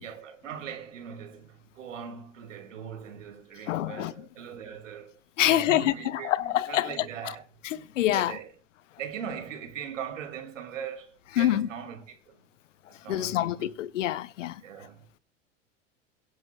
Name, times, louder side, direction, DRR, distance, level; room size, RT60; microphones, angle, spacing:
voice 1, 0.0-7.4 7.8-7.9 8.1-8.5 9.0-12.4 12.9-13.7 14.6-15.1, right 8 dB, 80° right, 2.3 m, -40 dB
voice 2, 3.7-4.1 5.4-7.1 7.6-8.3 11.4-11.7 13.1-14.6, left 13 dB, 75° left, 0.7 m, -26 dB
22.5 x 10.5 x 2.2 m
hypercardioid pair, 90°, 38 cm